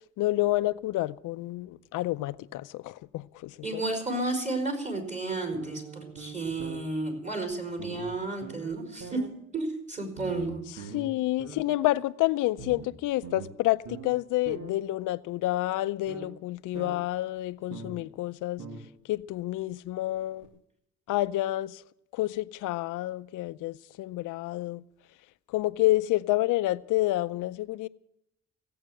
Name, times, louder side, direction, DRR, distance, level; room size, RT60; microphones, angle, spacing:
voice 1, 0.2-3.8 10.9-18.6 19.1-20.5 21.1-21.8 22.1-24.8 25.5-27.9, left 17 dB, 90° left, 0.6 m, -29 dB
voice 2, 3.6-9.2 9.5-10.9, right 2 dB, 25° right, 4.5 m, -32 dB
sound 1, 5.5-6.8 7.5-7.6 7.8-8.1 8.4-9.3 10.2-11.1 11.4-11.6 12.6-14.1 14.4-14.7 16.1-16.3 16.7-17.0 17.7-18.0 18.6-18.8 19.2-19.3 20.4-20.5, right 4 dB, 80° right, 2.2 m, -42 dB
16.5 x 8.6 x 7.8 m
cardioid pair, 90°, 30 cm